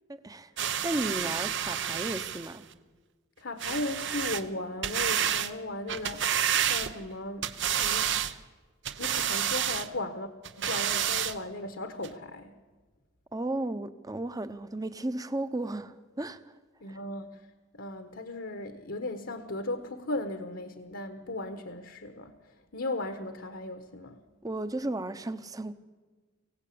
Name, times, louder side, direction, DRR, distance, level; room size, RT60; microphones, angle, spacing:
voice 1, 0.1-2.6 13.3-16.4 16.9-17.0 24.4-25.7, right 1 dB, 20° right, 0.9 m, -34 dB
sound 1, 0.6-2.5 3.6-4.4 4.8-5.5 5.9-7.1 7.4-8.3 8.8-9.9 10.4-11.4 12.0-12.1, right 9 dB, 60° right, 0.9 m, -29 dB
voice 2, 3.4-6.4 6.6-8.2 9.0-10.3 10.6-12.6 16.8-17.4 17.7-24.2, left 2 dB, 65° left, 1.4 m, -37 dB
24.5 x 16.5 x 8.6 m
head